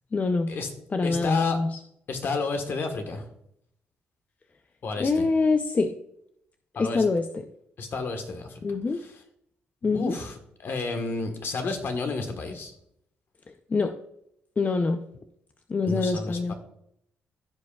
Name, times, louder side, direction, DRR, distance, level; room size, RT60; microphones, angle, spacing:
voice 1, 0.1-0.5 0.9-1.7 5.0-5.9 6.8-7.2 8.6-9.0 9.8-10.2 13.7-13.9 14.6-15.0 15.7-16.5, left 3 dB, 35° left, 7 dB, 0.6 m, -24 dB
voice 2, 1.0-1.6 2.1-3.2 4.8-5.2 6.7-7.0 7.8-9.1 9.8-12.7 15.9-16.5, left 3 dB, 60° left, 6 dB, 1.4 m, -31 dB
15.0 x 5.1 x 2.4 m, 0.74 s
supercardioid pair, 60°, 4 cm